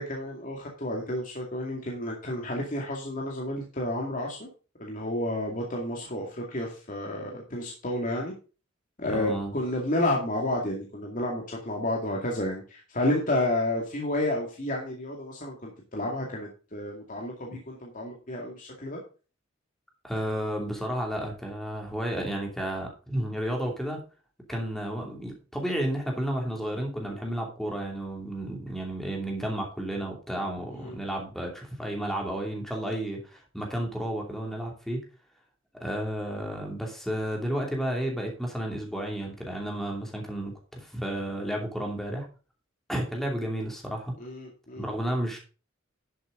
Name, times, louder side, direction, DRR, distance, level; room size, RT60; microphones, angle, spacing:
voice 1, 0.0-4.5 4.8-8.3 9.0-19.0 30.7-31.0 44.2-44.9, left 1 dB, 40° left, -1 dB, 2.2 m, -31 dB
voice 2, 9.1-9.5 20.0-24.0 24.5-35.0 35.7-42.3 42.9-44.1 44.8-45.4, right 1 dB, ahead, 0 dB, 2.7 m, -32 dB
11.0 x 7.9 x 3.9 m, 0.34 s
head